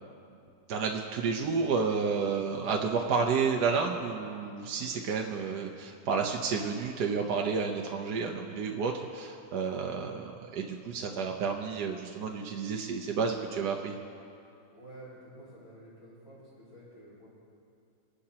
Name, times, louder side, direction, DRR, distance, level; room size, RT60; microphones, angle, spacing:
voice 1, 0.7-13.9, right 5 dB, 65° right, 1 dB, 1.3 m, -31 dB
voice 2, 14.7-17.3, right 1 dB, 80° left, -10 dB, 4.9 m, -50 dB
26.5 x 11.5 x 2.9 m, 2.6 s
omnidirectional pair, 2.1 m